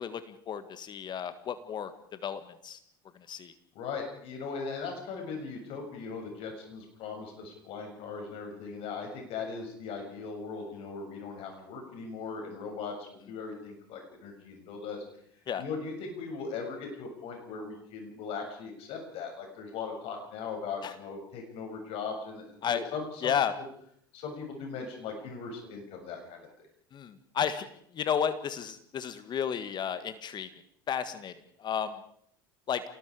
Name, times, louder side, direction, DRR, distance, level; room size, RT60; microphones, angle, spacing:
voice 1, 0.0-2.8 3.1-3.5 15.5-15.6 20.8-20.9 22.6-22.9 23.2-23.5 26.9-27.7 27.9-30.5 30.9-31.3 31.6-32.0 32.7-32.8, left 8 dB, 40° left, 12 dB, 1.7 m, -32 dB
voice 2, 3.7-15.0 15.6-22.6 22.9-23.3 24.1-26.7, left 5 dB, 55° left, 3 dB, 7.2 m, -39 dB
27.5 x 19.5 x 5.0 m, 0.68 s
hypercardioid pair, 70°, 12 cm